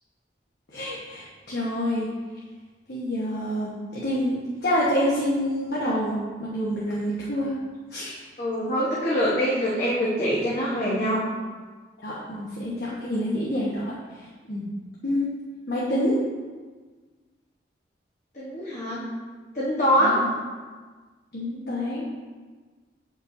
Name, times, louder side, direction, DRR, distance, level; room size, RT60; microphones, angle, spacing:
voice 1, 0.7-2.1 2.9-7.5 7.9-8.2 12.0-13.9 14.5-14.7 15.0-15.3 15.7-16.2 20.0-20.3 21.3-22.1, equal, 65° left, -7 dB, 1.1 m, -27 dB
voice 2, 8.4-11.2 13.1-13.3 18.3-19.1 19.5-20.2, equal, 40° left, -8 dB, 1.1 m, -24 dB
8.3 x 5.2 x 2.7 m, 1.4 s
head